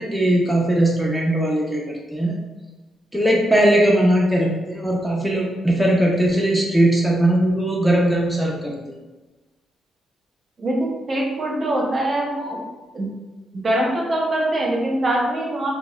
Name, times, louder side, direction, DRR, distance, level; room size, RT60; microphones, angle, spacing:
voice 1, 0.0-1.8 2.1-2.3 3.1-8.7, right 1 dB, 5° left, -2 dB, 0.4 m, -19 dB
voice 2, 10.6-12.6 12.9-13.1 13.6-15.7, right 1 dB, 40° right, -1 dB, 0.6 m, -23 dB
2.9 x 2.1 x 2.2 m, 1.2 s
cardioid pair, 90°, 0 cm